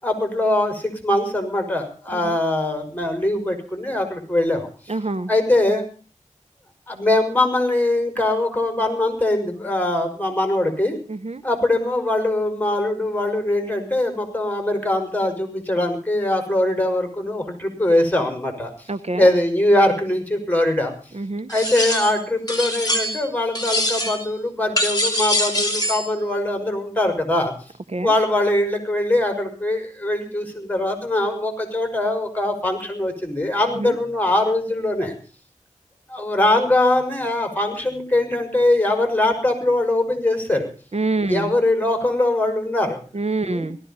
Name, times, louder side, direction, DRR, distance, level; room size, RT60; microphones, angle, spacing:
voice 1, 0.0-4.9 5.3-5.8 6.9-11.0 11.4-18.7 19.1-20.9 21.5-27.5 28.0-35.1 36.1-40.7 41.3-43.0 43.4-43.7, left 1 dB, 10° left, 5 dB, 5.9 m, -22 dB
voice 2, 4.9-5.3 11.1-11.4 18.9-19.3 21.1-21.5 27.9-28.1 33.8-33.9 40.9-41.5 43.1-43.8, right 3 dB, 55° right, 11 dB, 1.0 m, -26 dB
sound 1, 21.5-22.2 22.5-23.3 23.5-24.3 24.8-26.1, left 1 dB, 30° left, 4.8 m, -23 dB
18.0 x 14.5 x 5.6 m, 0.40 s
wide cardioid pair, 45°, 13 cm